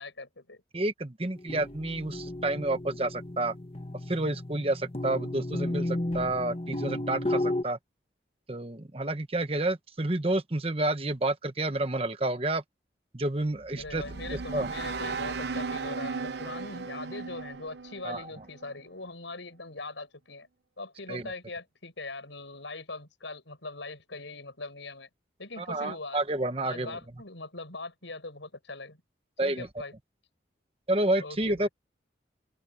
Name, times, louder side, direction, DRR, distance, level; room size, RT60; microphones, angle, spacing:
voice 1, 0.0-0.6 13.5-20.5 20.8-25.1 25.4-26.2 26.6-29.0 29.4-29.9 31.2-31.7, left 3 dB, 90° left, 7.1 m, -41 dB
voice 2, 0.7-3.5 4.1-7.8 8.5-12.6 13.1-14.0 14.3-14.7 18.0-18.3 21.1-21.3 25.6-27.0 29.4-29.7 30.9-31.7, right 2 dB, 30° right, 1.2 m, -30 dB
sound 1, 1.4-7.6, left 1 dB, 30° left, 1.4 m, -33 dB
sound 2, 13.5-18.8, right 4 dB, 65° right, 0.9 m, -36 dB
head